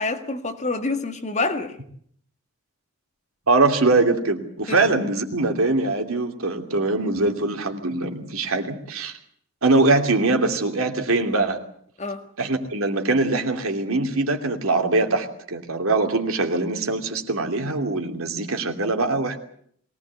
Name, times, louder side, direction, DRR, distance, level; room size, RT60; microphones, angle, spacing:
voice 1, 0.0-1.8 4.7-4.8 12.0-12.3, left 3 dB, 30° left, 5 dB, 2.0 m, -27 dB
voice 2, 3.5-9.1 9.6-11.6 12.4-19.4, right 3 dB, 75° right, 5 dB, 2.8 m, -22 dB
22.5 x 18.5 x 8.4 m, 0.64 s
head